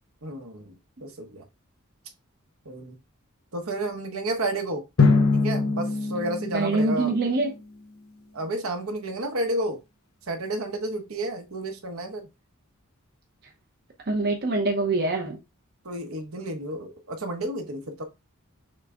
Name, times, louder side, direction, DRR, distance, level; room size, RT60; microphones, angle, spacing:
voice 1, 0.2-0.7 1.0-1.4 2.6-3.0 3.5-4.8 5.3-7.1 8.3-9.8 10.3-12.3 15.8-18.0, right 1 dB, 75° right, 1.1 m, -31 dB
Drum, 5.0-7.7, left 4 dB, 75° left, 0.9 m, -24 dB
voice 2, 6.5-7.5 14.1-15.4, right 2 dB, 50° right, 0.9 m, -24 dB
6.3 x 2.2 x 3.7 m
head